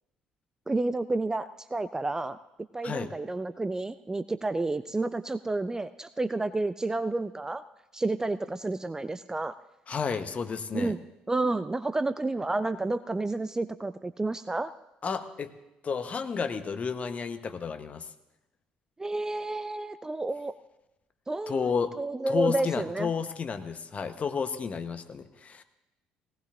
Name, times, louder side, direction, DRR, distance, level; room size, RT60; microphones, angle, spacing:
voice 1, 0.7-2.4 2.7-7.6 7.9-9.5 10.7-11.0 11.3-14.7 19.0-20.5 21.3-23.1, right 2 dB, 15° right, 13 dB, 0.4 m, -30 dB
voice 2, 9.9-10.9 15.0-15.5 15.8-18.1 21.5-21.9 22.3-25.6, left 6 dB, 35° left, 9 dB, 1.0 m, -31 dB
18.5 x 18.0 x 2.5 m, 0.93 s
figure-of-eight pair, 55°, 4 cm